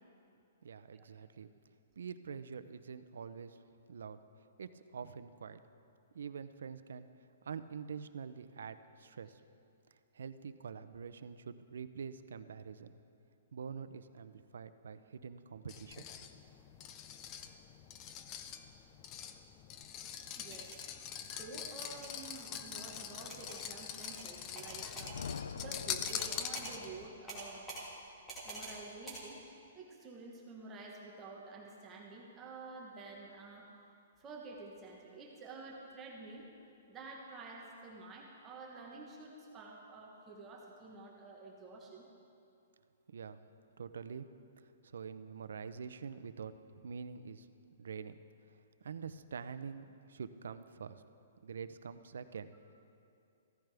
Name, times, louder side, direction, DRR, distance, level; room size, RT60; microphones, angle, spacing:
voice 1, 0.6-1.5 2.0-3.6 3.9-4.2 4.6-5.6 6.1-7.1 7.4-9.4 10.1-13.0 13.5-16.1 43.1-43.4 43.8-44.3 44.8-47.5 47.8-48.2 48.5-51.0 51.4-52.7, right 6 dB, 85° right, 12 dB, 0.6 m, -46 dB
sound 1, 15.7-27.1, left 8 dB, 20° left, 0.4 m, -44 dB
voice 2, 20.3-20.7 21.2-27.7 28.4-29.4 29.7-33.7 34.2-36.5 36.9-42.0, right 3 dB, 15° right, -2 dB, 1.1 m, -50 dB
sound 2, 20.4-20.8 21.8-22.1 23.3-23.6 24.0-24.3 24.6-25.2 26.1-26.3 26.5-26.7 27.3-27.8 28.3-28.8 29.1-29.2, right 2 dB, 5° left, 2.1 m, -46 dB
Thunder, 24.6-27.2, left 6 dB, 80° left, 0.4 m, -45 dB
15.0 x 14.0 x 3.4 m, 2.6 s
hypercardioid pair, 175°, 0 cm